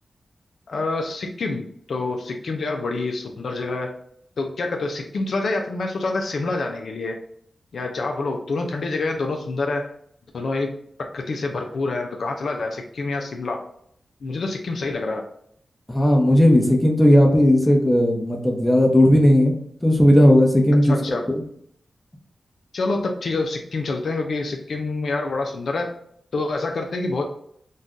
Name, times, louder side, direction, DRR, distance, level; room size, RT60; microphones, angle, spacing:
voice 1, 0.7-3.9 4.4-7.2 7.7-9.9 10.3-13.6 14.2-15.2 20.9-21.3 22.7-26.0 26.3-27.2, left 3 dB, 75° left, 2 dB, 0.4 m, -27 dB
voice 2, 15.9-19.5 19.8-20.9 21.3-21.4, equal, 15° left, 1 dB, 0.8 m, -16 dB
2.5 x 2.3 x 3.6 m, 0.67 s
cardioid pair, 45°, 0 cm